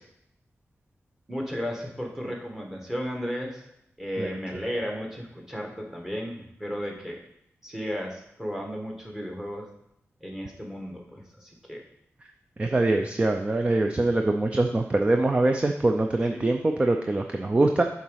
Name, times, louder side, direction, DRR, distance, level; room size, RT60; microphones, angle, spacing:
voice 1, 1.3-3.7 4.0-7.2 7.6-9.7 10.2-11.8 16.3-16.4, equal, 10° right, 0 dB, 1.4 m, -34 dB
voice 2, 12.6-17.8, right 2 dB, 25° right, 4 dB, 0.5 m, -23 dB
7.1 x 4.0 x 6.3 m, 0.77 s
wide cardioid pair, 125°, 5 cm